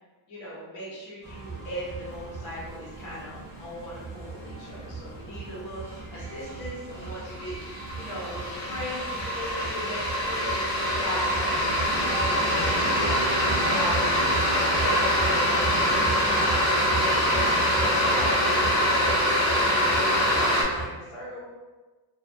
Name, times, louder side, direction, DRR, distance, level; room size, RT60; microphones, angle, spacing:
voice 1, 0.3-7.6 8.0-11.5 11.9-13.2 13.7-16.6 17.7-21.4, equal, 70° left, -7 dB, 1.3 m, -38 dB
sound 1, 1.2-20.9, right 2 dB, 5° left, 0.9 m, -34 dB
sound 2, 6.5-6.6 7.0-20.6, equal, 35° left, 0.7 m, -24 dB
2.5 x 2.4 x 2.6 m, 1.2 s
cardioid pair, 115°, 47 cm